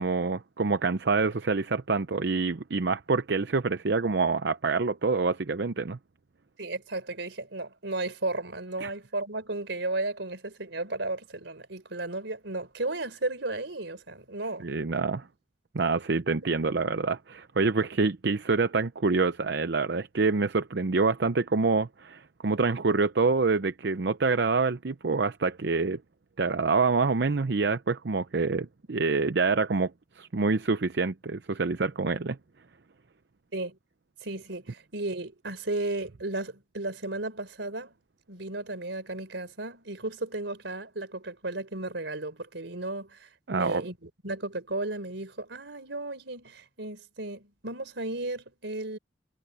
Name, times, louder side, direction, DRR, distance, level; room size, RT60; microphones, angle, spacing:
voice 1, 0.0-6.0 8.8-8.9 14.6-15.3 15.7-26.0 26.4-29.9 30.2-32.4 43.5-43.9, right 4 dB, 70° right, 0.6 m, -26 dB
voice 2, 6.6-14.7 33.5-33.8 34.2-37.9 38.3-49.0, right 2 dB, 90° right, 4.1 m, -34 dB
head